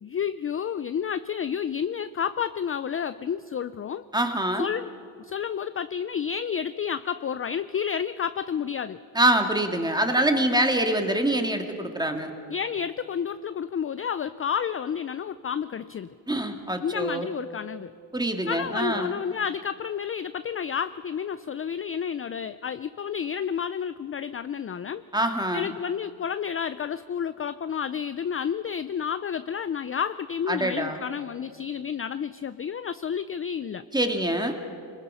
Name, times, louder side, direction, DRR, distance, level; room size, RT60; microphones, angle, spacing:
voice 1, 0.0-4.0 4.6-4.9 5.2-9.0 12.5-16.1 16.8-17.9 18.5-25.0 25.5-33.8, left 7 dB, 30° left, 13 dB, 0.4 m, -30 dB
voice 2, 4.1-4.7 9.1-12.3 16.3-17.3 18.1-19.2 25.1-25.7 30.5-31.0 33.9-34.5, right 1 dB, 10° right, 5 dB, 1.9 m, -25 dB
25.0 x 20.5 x 5.5 m, 2.5 s
cardioid pair, 100°, 46 cm